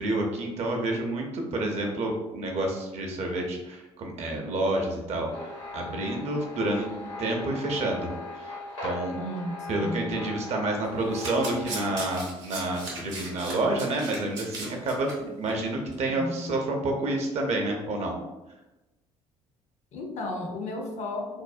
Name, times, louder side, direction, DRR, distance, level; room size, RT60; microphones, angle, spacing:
voice 1, 0.0-6.9 7.2-9.1 9.7-18.1, right 2 dB, 45° right, 1 dB, 0.6 m, -29 dB
sound 1, 5.3-12.0, left 2 dB, 85° left, 0.9 m, -39 dB
voice 2, 9.1-10.1 16.1-16.5 19.9-21.4, left 2 dB, 50° left, 2 dB, 0.5 m, -34 dB
Domestic sounds home sounds, 10.8-15.1 15.5-15.7 15.9-16.0, right 2 dB, 70° right, 0.8 m, -37 dB
2.5 x 2.1 x 2.4 m, 1.0 s
figure-of-eight pair, 55°, 15 cm